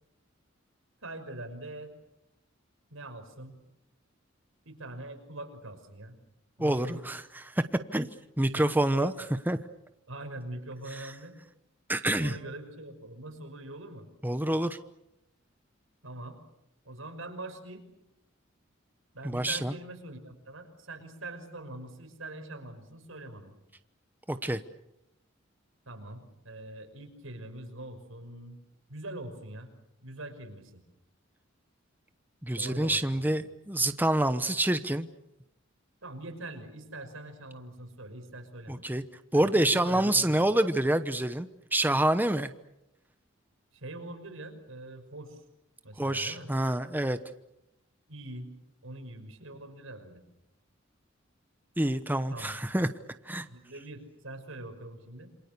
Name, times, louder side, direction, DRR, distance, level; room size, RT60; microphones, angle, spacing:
voice 1, 1.0-1.9 2.9-3.6 4.6-6.2 6.6-7.1 8.5-8.6 8.9-9.4 10.1-11.4 12.2-14.1 16.0-16.4 16.8-17.8 19.1-23.5 25.9-28.6 28.9-29.7 30.0-30.8 32.6-33.3 36.0-38.8 39.3-40.5 43.7-45.4 45.8-46.5 48.1-48.5 48.8-50.2 52.3-52.6 53.5-55.3, right 1 dB, 85° right, 6 dB, 6.0 m, -43 dB
voice 2, 6.6-7.6 7.9-8.1 8.4-9.1 9.5-9.6 11.9-12.4 14.2-14.8 19.2-19.7 24.3-24.6 32.4-35.1 38.7-39.0 39.3-42.5 46.0-47.2 51.8-52.9 53.2-53.5, right 1 dB, 10° right, 10 dB, 1.0 m, -27 dB
28.0 x 26.0 x 6.9 m, 0.86 s
head